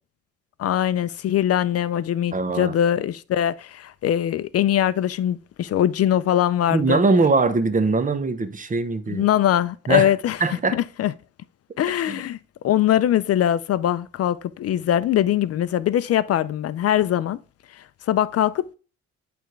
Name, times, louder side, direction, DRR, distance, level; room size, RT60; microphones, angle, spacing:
voice 1, 0.6-7.0 9.1-10.4 10.7-11.1 11.8-12.4 12.6-17.4 18.1-18.7, left 11 dB, 55° left, 0.4 m, -22 dB
voice 2, 2.3-2.7 6.7-9.3 9.9-10.1 10.4-10.8 12.1-12.2, right 3 dB, 25° right, 1.0 m, -21 dB
10.0 x 3.5 x 3.2 m
cardioid pair, 90°, 30 cm